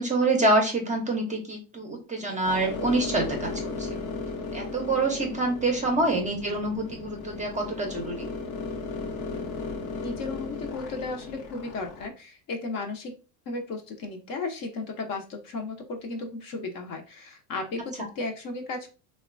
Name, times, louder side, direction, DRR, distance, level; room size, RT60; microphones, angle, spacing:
voice 1, 0.0-3.9 4.5-8.3, right 2 dB, 15° right, 1 dB, 0.6 m, -26 dB
sound 1, 2.4-12.1, left 3 dB, 80° left, 0.8 m, -36 dB
voice 2, 10.0-13.1 13.5-18.9, left 3 dB, 45° left, 3 dB, 0.6 m, -35 dB
2.9 x 2.2 x 2.4 m, 0.34 s
hypercardioid pair, 90°, 50 cm